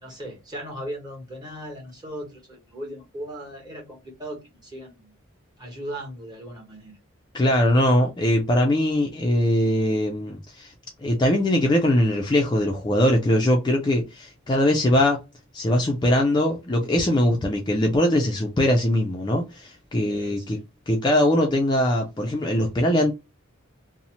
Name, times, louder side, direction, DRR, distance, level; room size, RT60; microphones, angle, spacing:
voice 1, 0.0-5.1 5.6-6.9 20.1-20.6, equal, 20° right, 1.0 m, -38 dB
voice 2, 7.3-10.7 11.0-15.2 15.5-20.6 20.9-23.1, left 1 dB, 20° left, 0.3 m, -21 dB
2.7 x 2.0 x 2.8 m
head